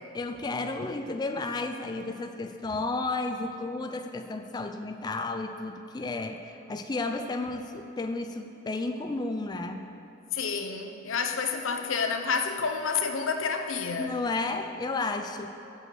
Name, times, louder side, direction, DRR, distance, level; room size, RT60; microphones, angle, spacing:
voice 1, 0.1-9.9 14.0-15.5, left 3 dB, 20° left, 6 dB, 0.3 m, -32 dB
voice 2, 10.3-14.2, left 5 dB, 80° left, 5 dB, 0.8 m, -29 dB
8.0 x 6.3 x 7.6 m, 2.8 s
head